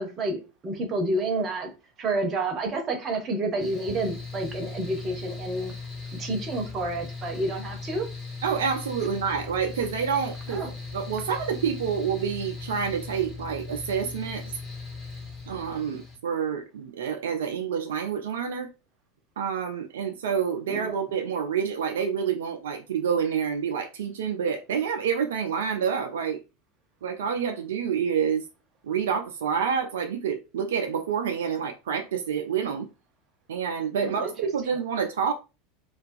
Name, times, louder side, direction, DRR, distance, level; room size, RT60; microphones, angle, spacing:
voice 1, 0.0-1.7 2.0-5.7 6.2-8.1 10.5-10.7 20.7-20.9 34.0-34.3, right 2 dB, 35° right, 0.7 m, -29 dB
Mechanical fan, 3.6-16.2, left 4 dB, 15° left, 1.1 m, -38 dB
voice 2, 8.4-10.6 10.9-14.4 15.5-18.7 19.4-26.4 27.0-28.5 28.8-32.9 33.5-35.3, right 7 dB, 70° right, 0.3 m, -28 dB
2.3 x 2.2 x 2.5 m
figure-of-eight pair, 80°, 0 cm